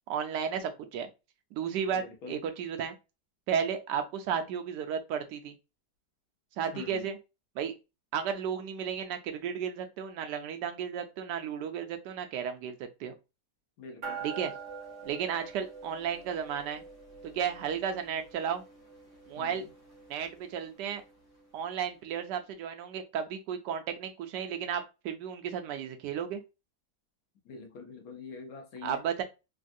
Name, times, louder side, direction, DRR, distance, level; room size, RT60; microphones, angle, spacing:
voice 1, 0.1-1.1 1.5-2.0 2.3-2.9 3.5-5.6 6.6-7.2 7.6-7.7 8.1-13.1 14.2-14.5 15.0-16.8 17.3-18.6 19.3-19.6 20.1-21.0 21.5-26.4 28.8-29.2, right 8 dB, 85° right, 1.2 m, -33 dB
voice 2, 1.9-2.4 6.7-7.1 13.8-14.2 19.4-19.7 27.4-29.0, left 5 dB, 65° left, 1.1 m, -45 dB
sound 1, 14.0-21.7, right 5 dB, 40° right, 1.0 m, -46 dB
3.5 x 2.3 x 2.6 m
omnidirectional pair, 1.8 m